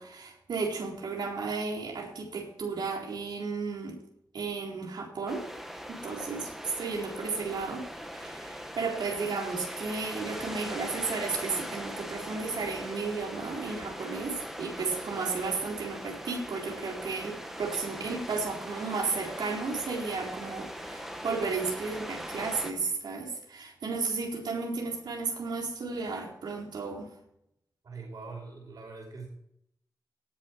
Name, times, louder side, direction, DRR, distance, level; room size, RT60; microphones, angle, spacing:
voice 1, 0.0-4.0 4.3-5.5 5.9-6.5 6.8-7.8 8.1-27.1, right 4 dB, 85° right, -1 dB, 4.0 m, -33 dB
sound 1, 5.3-22.7, equal, 5° right, 1.9 m, -40 dB
voice 2, 27.8-29.3, right 4 dB, 60° right, -1 dB, 5.2 m, -43 dB
19.0 x 7.5 x 4.7 m, 0.76 s
wide cardioid pair, 120°, 7 cm